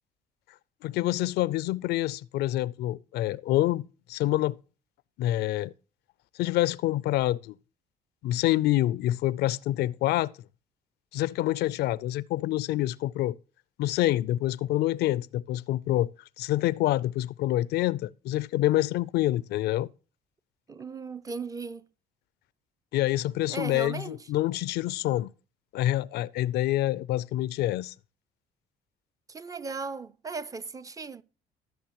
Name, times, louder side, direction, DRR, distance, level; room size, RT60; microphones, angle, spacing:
voice 1, 0.8-3.8 4.1-4.6 5.2-5.7 6.4-7.5 8.2-10.3 11.1-13.4 13.8-16.1 16.4-19.9 22.9-25.3 25.7-27.9, left 15 dB, 75° left, 0.4 m, -27 dB
voice 2, 20.7-21.9 23.5-24.2 29.3-31.2, right 4 dB, 20° right, 0.4 m, -37 dB
15.0 x 6.8 x 3.0 m
cardioid pair, 110°, 17 cm